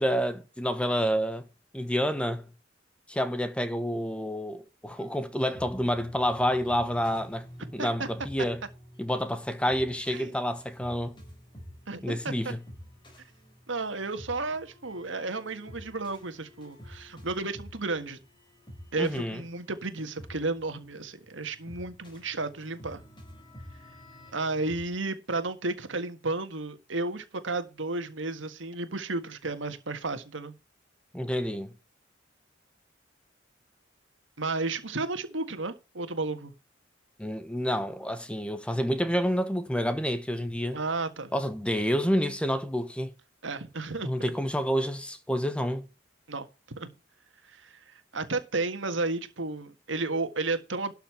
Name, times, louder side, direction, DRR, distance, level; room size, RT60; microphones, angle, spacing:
voice 1, 0.0-1.5 1.7-2.5 3.1-7.5 7.7-8.6 9.0-11.2 12.0-12.6 19.0-19.4 31.1-31.7 37.2-40.8 41.3-43.1 44.0-45.9, equal, 5° left, 1.0 m, -28 dB
sound 1, 5.0-24.9, equal, 25° left, 4.1 m, -49 dB
voice 2, 11.9-12.6 13.7-18.2 18.9-23.0 24.3-30.5 34.4-36.5 40.7-41.3 43.4-44.1 46.3-46.5 46.8-46.9 47.5-47.7 48.1-50.9, right 3 dB, 80° right, 1.7 m, -32 dB
12.5 x 5.7 x 5.8 m
head